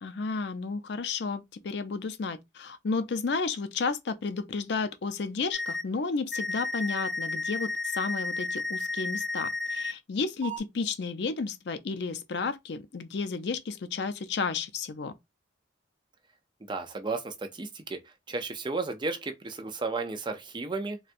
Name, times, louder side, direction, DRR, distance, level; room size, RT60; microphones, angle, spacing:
voice 1, 0.0-15.1, left 4 dB, 60° left, 0.5 m, -32 dB
sound 1, 5.5-5.8 6.3-9.9 10.4-10.6, left 3 dB, ahead, 0.9 m, -32 dB
voice 2, 16.7-18.0 18.3-21.0, right 3 dB, 25° right, 0.5 m, -33 dB
4.0 x 2.2 x 2.5 m
head